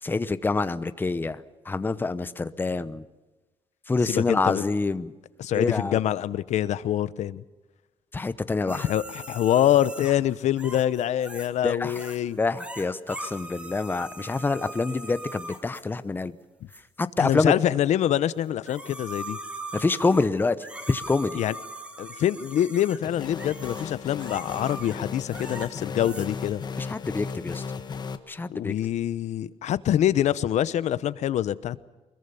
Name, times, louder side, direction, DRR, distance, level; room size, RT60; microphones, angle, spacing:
voice 1, 0.0-1.4 1.7-3.0 3.9-5.1 5.5-6.0 8.1-8.9 11.6-12.0 12.4-16.4 17.0-17.5 19.7-20.6 20.9-21.4 26.8-27.6 28.3-28.7, left 3 dB, 15° left, 0.9 m, -26 dB
voice 2, 4.1-4.6 5.4-7.4 8.7-12.4 17.2-19.4 21.3-21.5 22.0-26.6 28.5-31.8, left 11 dB, 90° left, 0.9 m, -25 dB
sound 1, 8.7-11.6 11.9-12.2 12.5-15.9 16.7-16.8 18.4-26.6, right 1 dB, 10° right, 2.5 m, -40 dB
sound 2, 23.0-28.2, left 5 dB, 40° left, 1.4 m, -36 dB
24.5 x 21.5 x 7.1 m
wide cardioid pair, 160°, 11 cm